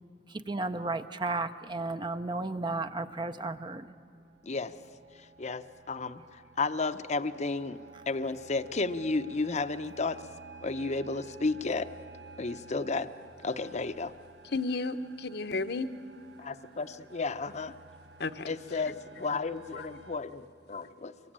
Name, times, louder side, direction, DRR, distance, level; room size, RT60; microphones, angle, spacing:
voice 1, 0.3-3.9, right 3 dB, 25° right, 9 dB, 0.6 m, -33 dB
sound 1, 3.1-20.2, right 4 dB, 75° right, 1.2 m, -53 dB
voice 2, 4.4-4.7 5.4-7.8 8.1-10.2 10.6-11.9 12.4-13.1 13.4-14.1 16.4-17.7 18.5-21.1, left 3 dB, 40° left, 11 dB, 0.7 m, -32 dB
voice 3, 14.4-15.9 18.2-18.8 19.7-19.9, left 3 dB, 65° left, 11 dB, 1.0 m, -33 dB
25.0 x 23.0 x 8.8 m, 2.4 s
head